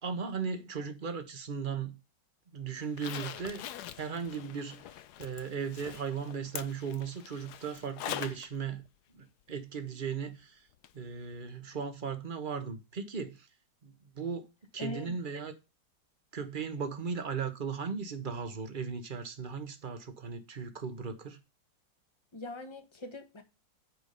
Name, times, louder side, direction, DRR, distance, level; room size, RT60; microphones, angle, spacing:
voice 1, 0.0-2.0 2.5-3.6 4.0-4.9 5.2-8.8 9.1-10.7 10.9-13.5 13.8-14.4 14.7-15.5 16.3-21.4, right 6 dB, 30° right, 1.3 m, -37 dB
Zipper (clothing), 2.8-8.5 8.8-8.9 10.8-10.9 11.3-11.4, left 11 dB, 70° left, 1.2 m, -43 dB
voice 2, 14.8-15.1 22.3-23.4, left 2 dB, 15° left, 1.4 m, -41 dB
9.3 x 5.0 x 5.3 m
omnidirectional pair, 1.9 m